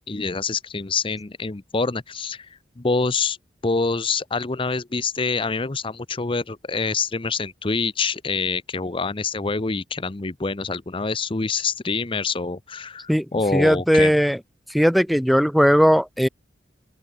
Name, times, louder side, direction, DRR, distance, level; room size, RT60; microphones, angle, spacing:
voice 1, 0.1-2.5 2.8-3.4 3.6-14.1, left 4 dB, 30° left, 0.7 m, -26 dB
voice 2, 13.5-14.4 14.7-16.3, equal, ahead, 1.0 m, -18 dB
open air
head